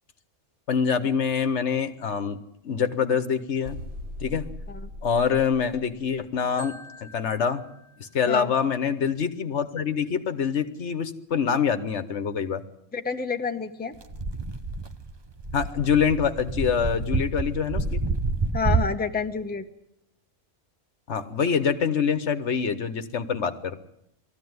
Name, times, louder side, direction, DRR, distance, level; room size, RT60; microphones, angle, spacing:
voice 1, 0.7-2.4 2.6-3.8 4.2-4.5 5.0-6.8 7.1-7.6 8.0-12.6 15.5-18.0 21.1-23.8, left 6 dB, 65° left, 10 dB, 1.3 m, -25 dB
sound 1, 3.6-6.4, left 1 dB, 55° right, 2.4 m, -39 dB
Marimba xylophone, 6.6-8.7, left 1 dB, 70° right, 3.7 m, -48 dB
voice 2, 12.9-14.0 18.5-19.6, left 5 dB, 10° left, 5 dB, 0.9 m, -29 dB
sound 2, 14.0-19.0, right 3 dB, 25° right, 0.6 m, -28 dB
19.5 x 14.0 x 9.5 m, 0.80 s
omnidirectional pair, 1.3 m